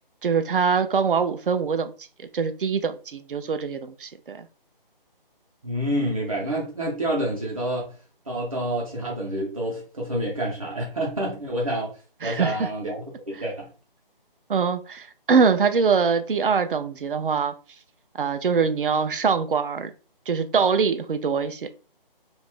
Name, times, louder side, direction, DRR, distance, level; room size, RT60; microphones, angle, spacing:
voice 1, 0.2-1.9 2.3-4.5 12.2-12.7 14.5-17.5 18.2-19.9 20.3-21.7, right 5 dB, 65° right, 0.4 m, -23 dB
voice 2, 5.6-7.9 8.3-11.9 12.2-13.7, right 1 dB, 35° right, 0.7 m, -28 dB
2.4 x 2.0 x 3.4 m
figure-of-eight pair, 170°, 29 cm